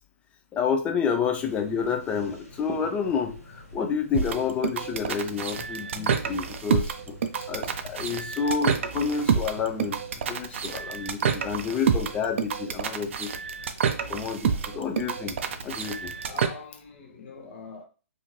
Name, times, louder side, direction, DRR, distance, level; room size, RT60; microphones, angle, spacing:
voice 1, 0.5-7.2 7.5-10.0 10.3-13.3 14.1-15.4 15.6-16.1, left 6 dB, 15° left, 0.4 m, -29 dB
sound 1, 1.4-16.5, left 1 dB, 80° left, 1.1 m, -46 dB
sound 2, 4.1-16.5, right 7 dB, 55° right, 0.4 m, -28 dB
voice 2, 16.2-17.8, left 5 dB, 50° left, 0.8 m, -44 dB
2.7 x 2.5 x 3.0 m
hypercardioid pair, 130°, 8 cm